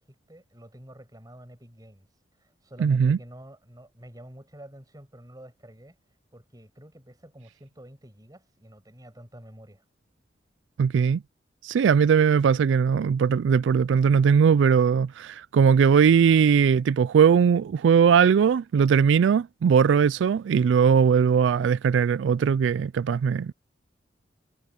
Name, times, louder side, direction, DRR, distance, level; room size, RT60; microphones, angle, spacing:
voice 1, 0.0-2.1 2.4-6.0 6.3-9.8, right 1 dB, 20° right, 5.9 m, -48 dB
voice 2, 2.8-3.2 10.8-11.2 11.6-23.5, right 7 dB, 80° right, 0.3 m, -20 dB
head